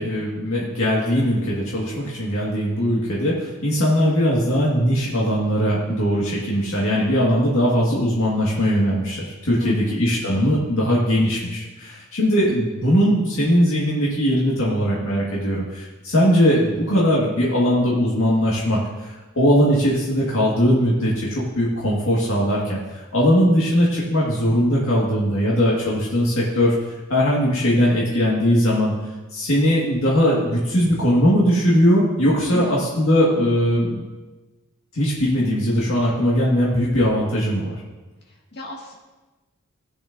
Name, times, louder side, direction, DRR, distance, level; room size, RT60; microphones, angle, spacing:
voice 1, 0.0-26.7 27.1-28.9 29.3-34.0 34.9-37.8, equal, 75° left, -5 dB, 1.8 m, -20 dB
voice 2, 9.6-10.1 32.5-32.8 38.3-39.0, left 3 dB, 50° left, -2 dB, 1.9 m, -33 dB
15.0 x 8.5 x 2.6 m, 1.2 s
head